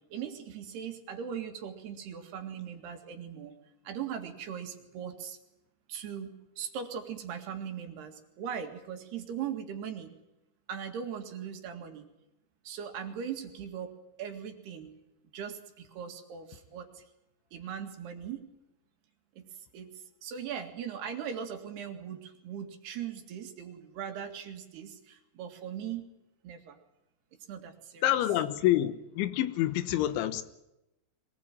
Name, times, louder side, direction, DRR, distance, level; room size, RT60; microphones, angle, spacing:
voice 1, 0.1-3.5 3.9-5.4 5.9-10.1 10.7-12.1 12.7-14.9 15.3-17.0 17.5-18.4 19.4-19.5 19.7-19.9 20.2-26.0 26.4-26.8 27.5-28.2, right 8 dB, 65° right, 3.9 m, -39 dB
voice 2, 28.0-30.4, left 13 dB, 85° left, 3.5 m, -27 dB
23.5 x 19.5 x 9.1 m
omnidirectional pair, 5.3 m